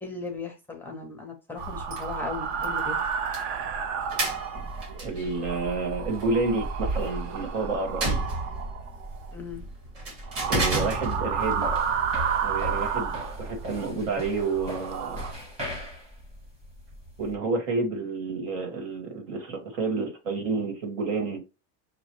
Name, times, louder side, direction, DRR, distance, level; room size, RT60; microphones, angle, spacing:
voice 1, 0.0-3.0 9.3-9.6, left 4 dB, 5° left, 0.4 m, -37 dB
sound 1, 1.6-14.0, right 2 dB, 40° right, 1.9 m, -34 dB
sound 2, 1.6-5.0 5.3-9.3 10.2-13.9 14.4-15.3, right 7 dB, 65° right, 0.8 m, -32 dB
voice 2, 4.9-8.4 10.5-11.7 12.4-13.1 13.4-15.2 17.2-21.4, right 3 dB, 90° right, 2.1 m, -29 dB
sound 3, 11.4-17.4, left 1 dB, 15° right, 1.0 m, -38 dB
6.3 x 2.7 x 3.1 m
supercardioid pair, 170°, 37 cm